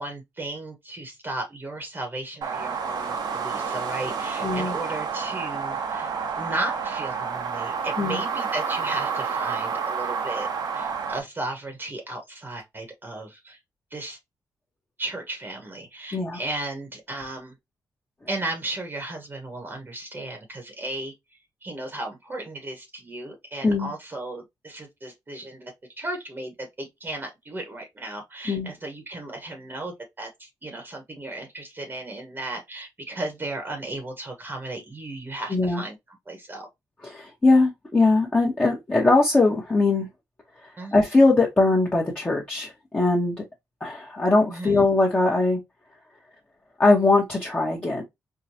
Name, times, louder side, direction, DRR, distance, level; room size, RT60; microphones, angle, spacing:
voice 1, 0.0-6.1 6.4-10.5 10.7-13.6 13.9-14.2 15.0-17.6 18.3-21.1 21.6-36.0 36.3-36.7 40.8-40.9 44.5-44.8, right 2 dB, 30° right, 1.0 m, -35 dB
sound 1, 2.4-11.2, right 6 dB, 70° right, 0.9 m, -29 dB
voice 2, 4.4-4.7 8.0-8.2 16.1-16.4 23.6-23.9 28.5-28.7 35.5-35.8 37.0-40.1 40.6-43.4 43.8-45.6 46.8-48.0, left 3 dB, 20° left, 1.0 m, -21 dB
4.6 x 2.2 x 2.7 m
cardioid pair, 105°, 7 cm